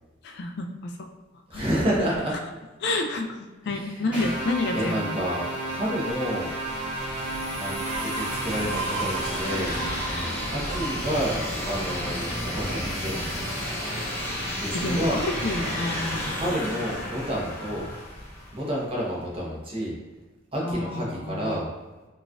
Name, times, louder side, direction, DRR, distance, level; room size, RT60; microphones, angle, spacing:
voice 1, 0.2-0.9 1.5-1.7 2.8-5.2 14.7-16.3 20.6-21.6, left 2 dB, 55° left, 4 dB, 0.3 m, -29 dB
voice 2, 1.5-2.4 3.6-4.1 4.7-6.5 7.6-9.7 10.5-13.1 14.6-15.2 16.3-17.9 18.5-20.0 20.5-21.7, equal, 30° right, -4 dB, 0.8 m, -29 dB
sound 1, 4.1-10.6, right 1 dB, 5° right, 1.1 m, -33 dB
sound 2, 5.3-18.9, equal, 10° left, 0.6 m, -32 dB
sound 3, 7.7-13.2, right 4 dB, 80° right, 0.3 m, -37 dB
3.9 x 2.4 x 2.3 m, 1.2 s
head